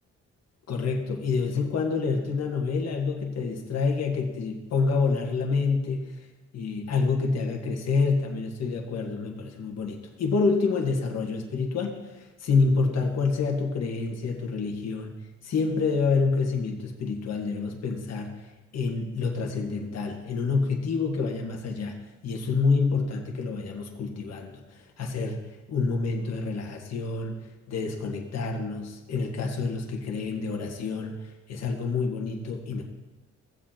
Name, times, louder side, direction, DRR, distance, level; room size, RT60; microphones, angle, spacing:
voice 1, 0.7-6.2 6.5-15.1 15.4-18.4 18.7-22.0 22.2-25.4 25.7-27.4 27.7-32.8, left 4 dB, 60° left, 1 dB, 1.5 m, -27 dB
16.5 x 7.6 x 2.9 m, 1.1 s
cardioid pair, 90°, 30 cm